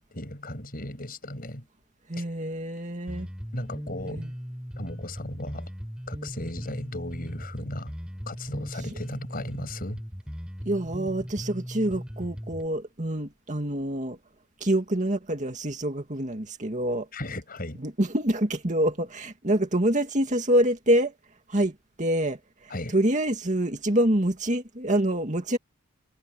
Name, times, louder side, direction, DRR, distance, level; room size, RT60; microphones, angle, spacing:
voice 1, 0.0-1.7 2.2-2.3 3.5-4.3 4.8-5.7 6.1-7.9 8.3-10.0 17.1-17.8 22.7-23.0, left 1 dB, 40° left, 7.6 m, -36 dB
voice 2, 2.1-3.3 4.1-4.3 10.7-14.2 14.6-17.1 17.8-21.1 21.5-25.6, right 1 dB, 35° right, 2.2 m, -26 dB
Bass guitar, 3.1-12.7, equal, 5° right, 3.7 m, -38 dB
head